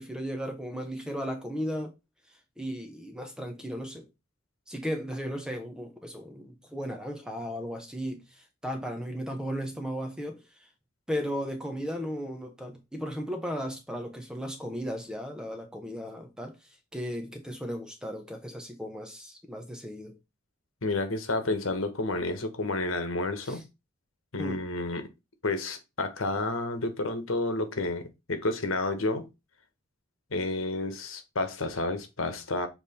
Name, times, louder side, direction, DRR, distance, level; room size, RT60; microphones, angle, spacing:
voice 1, 0.0-1.9 2.6-4.1 4.7-10.4 11.1-16.6 16.9-20.2 23.4-23.6 24.4-24.6, equal, 5° right, 0.9 m, -35 dB
voice 2, 20.8-23.6 24.3-25.1 25.4-29.3 30.3-32.7, left 2 dB, 85° left, 1.2 m, -30 dB
7.3 x 3.1 x 4.2 m
head